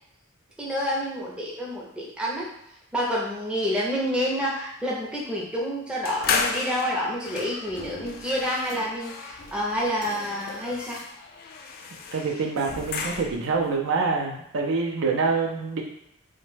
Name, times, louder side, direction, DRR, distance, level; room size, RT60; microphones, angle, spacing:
voice 1, 0.6-2.5 2.9-11.0, equal, 5° right, -4 dB, 0.5 m, -28 dB
sound 1, 6.1-13.6, left 5 dB, 45° left, 0.3 m, -33 dB
voice 2, 12.1-15.8, right 4 dB, 60° right, 1 dB, 0.4 m, -26 dB
3.0 x 2.1 x 3.2 m, 0.77 s
head